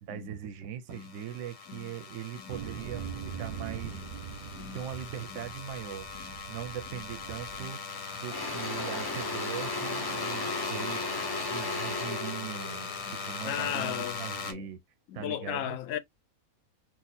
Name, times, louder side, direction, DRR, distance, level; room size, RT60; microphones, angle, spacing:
voice 1, 0.0-4.0 4.7-6.1 6.5-7.8 8.1-11.2 11.5-14.8 15.1-15.8, right 10 dB, 65° right, 0.8 m, -40 dB
sound 1, 0.9-14.5, left 5 dB, 50° left, 0.8 m, -39 dB
sound 2, 2.5-7.7, right 7 dB, 85° right, 1.1 m, -42 dB
Engine / Drill, 7.4-7.6 7.9-14.1, left 2 dB, 30° left, 0.4 m, -36 dB
voice 2, 13.4-14.7 15.1-16.0, left 11 dB, 75° left, 1.0 m, -37 dB
2.8 x 2.4 x 4.1 m
omnidirectional pair, 1.5 m